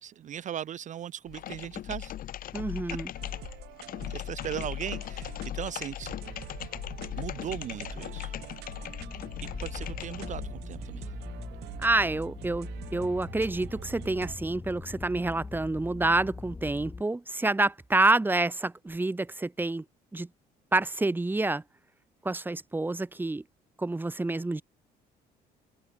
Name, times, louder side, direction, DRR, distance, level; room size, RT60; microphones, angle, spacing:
voice 1, 0.0-2.1 4.1-6.2 7.2-8.3 9.4-11.0, right 10 dB, 45° right, 0.7 m, -38 dB
sound 1, 1.3-10.6, left 12 dB, 55° left, 0.8 m, -38 dB
voice 2, 2.5-3.1 11.8-19.8 20.1-20.3 20.7-21.6 22.2-23.4 23.8-24.6, right 2 dB, 10° right, 1.6 m, -28 dB
sound 2, 3.1-14.4, right 20 dB, 90° right, 3.4 m, -45 dB
sound 3, 9.0-17.0, left 3 dB, 20° left, 1.2 m, -42 dB
cardioid pair, 110°, 17 cm